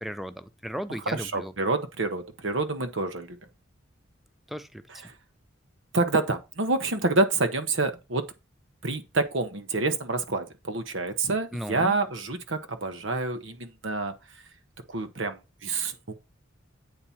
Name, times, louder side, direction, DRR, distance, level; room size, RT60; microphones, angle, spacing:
voice 1, 0.0-1.5 4.5-5.0 11.5-12.0, equal, ahead, 0.5 m, -36 dB
voice 2, 1.1-3.4 4.9-5.1 5.9-8.3 8.8-14.1 14.9-16.1, right 3 dB, 65° right, 1.0 m, -28 dB
8.8 x 4.1 x 5.7 m
head